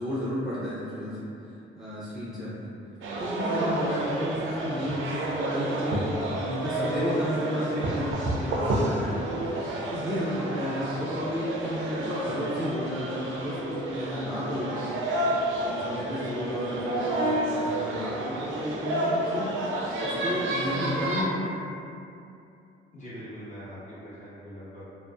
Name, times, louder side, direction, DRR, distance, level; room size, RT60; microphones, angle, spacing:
voice 1, 0.0-2.7 3.2-6.1 6.3-9.4 9.6-21.6, equal, 5° right, -12 dB, 0.6 m, -33 dB
sound 1, 3.0-21.2, right 1 dB, 80° right, 0.4 m, -30 dB
voice 2, 22.9-24.8, equal, 40° left, -11 dB, 1.1 m, -42 dB
2.6 x 2.0 x 2.3 m, 2.6 s
cardioid pair, 90°, 20 cm